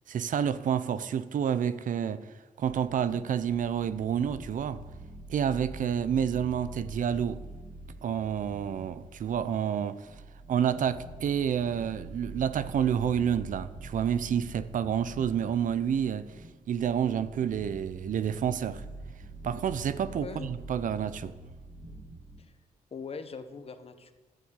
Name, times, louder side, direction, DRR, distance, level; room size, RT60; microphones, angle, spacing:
voice 1, 0.1-2.3 2.6-4.8 5.3-7.4 8.0-10.1 10.5-16.4 16.7-18.8 19.4-21.3, right 8 dB, 65° right, 0.7 m, -29 dB
sound 1, 2.6-22.4, right 2 dB, 10° right, 2.1 m, -45 dB
voice 2, 20.2-20.5 22.4-22.5 22.9-24.1, left 5 dB, 45° left, 1.2 m, -41 dB
11.5 x 9.0 x 8.2 m
cardioid pair, 95°, 14 cm